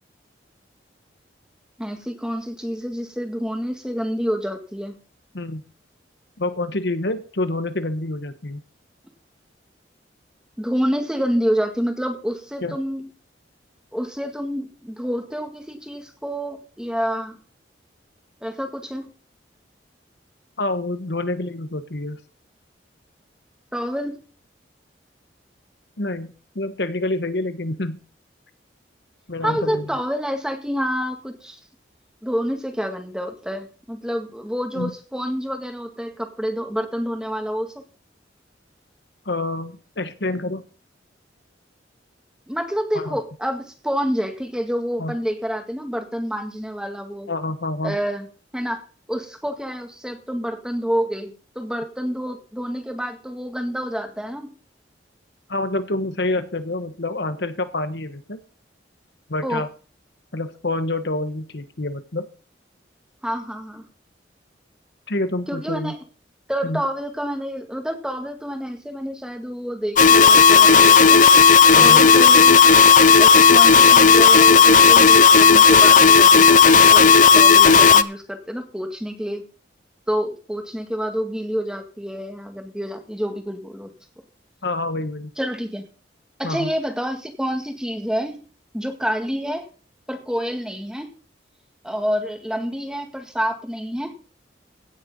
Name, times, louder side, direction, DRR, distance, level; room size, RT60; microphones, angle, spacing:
voice 1, 1.8-5.0 10.6-13.1 13.9-17.4 18.4-19.1 23.7-24.2 29.4-31.6 32.2-37.8 42.5-47.3 47.8-48.3 48.5-48.8 49.1-54.5 59.4-59.7 63.2-63.8 65.5-66.0 66.5-71.2 71.7-72.9 73.2-79.4 80.1-83.9 85.4-85.8 86.4-88.4 88.7-89.6 90.1-91.1 91.8-94.1, equal, 5° right, 5 dB, 1.8 m, -28 dB
voice 2, 6.4-8.6 12.6-12.8 20.6-22.2 26.0-28.0 29.3-29.8 34.7-34.9 39.2-40.6 42.9-43.2 45.0-45.2 47.3-48.0 55.5-58.4 59.3-59.7 60.3-62.3 65.1-65.9 66.6-66.8 71.8-72.0 84.6-85.3 86.4-86.7, left 2 dB, 65° left, 11 dB, 1.3 m, -27 dB
sound 1, 70.0-78.0, left 5 dB, 45° left, 0.5 m, -11 dB
16.5 x 6.8 x 5.4 m, 0.38 s
head